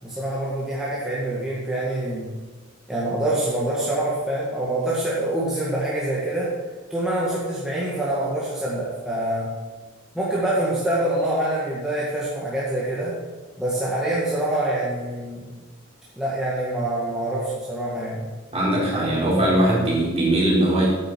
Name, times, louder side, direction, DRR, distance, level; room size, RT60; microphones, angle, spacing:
voice 1, 0.0-2.3 2.9-6.5 6.9-9.5 10.1-13.1 13.6-15.6 16.2-18.2, right 1 dB, 5° right, -8 dB, 2.0 m, -25 dB
voice 2, 18.5-20.9, right 1 dB, 30° right, -5 dB, 3.7 m, -20 dB
9.3 x 8.7 x 4.7 m, 1.3 s
head